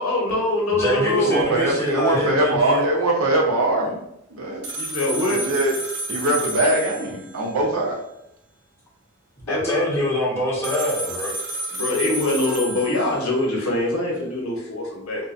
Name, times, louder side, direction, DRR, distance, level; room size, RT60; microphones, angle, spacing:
voice 1, 0.0-1.4 4.7-5.4 9.4-9.8 11.7-15.2, left 2 dB, 80° left, -2 dB, 0.8 m, -23 dB
voice 2, 0.7-2.9 9.5-11.3, equal, 10° left, -5 dB, 0.7 m, -24 dB
voice 3, 1.2-4.0 4.3-4.7 5.3-5.7 6.1-8.0, right 2 dB, 85° right, -1 dB, 0.7 m, -22 dB
sound 1, 4.6-7.6 10.6-13.5, right 2 dB, 50° right, 0.4 m, -31 dB
2.6 x 2.2 x 2.5 m, 0.80 s
head